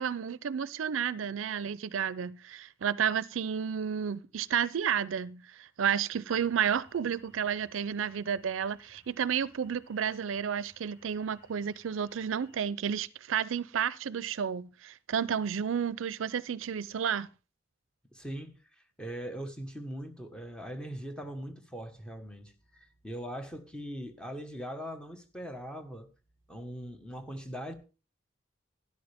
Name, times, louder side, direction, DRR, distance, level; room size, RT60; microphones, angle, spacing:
voice 1, 0.0-17.3, right 7 dB, 85° right, 0.5 m, -31 dB
sound 1, 6.3-12.7, equal, 15° right, 4.6 m, -63 dB
voice 2, 18.1-26.1 26.5-27.7, equal, 5° left, 1.3 m, -41 dB
12.5 x 11.0 x 3.5 m
head